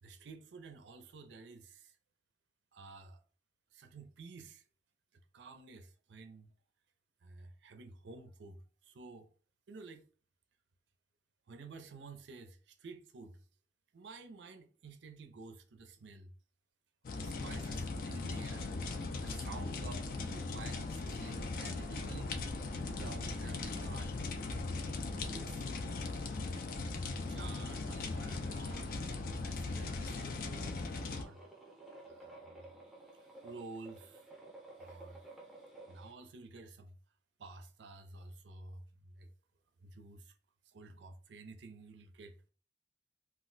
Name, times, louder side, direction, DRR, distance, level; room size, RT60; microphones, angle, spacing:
voice 1, 0.0-1.9 2.7-3.2 3.7-4.6 5.3-6.5 7.2-9.3 9.7-10.0 11.5-13.4 13.9-16.3 17.2-18.7 19.2-22.3 23.0-24.1 25.1-25.7 26.5-29.0 29.4-31.4 32.1-32.6 33.4-34.2 34.8-35.2 35.9-37.0 37.4-39.3 39.8-40.3 40.7-42.3, right 3 dB, 80° right, 0.4 m, -51 dB
sound 1, 17.0-31.2, left 3 dB, 50° left, 0.4 m, -39 dB
sound 2, 31.0-36.1, right 2 dB, ahead, 0.6 m, -53 dB
2.4 x 2.1 x 3.8 m
head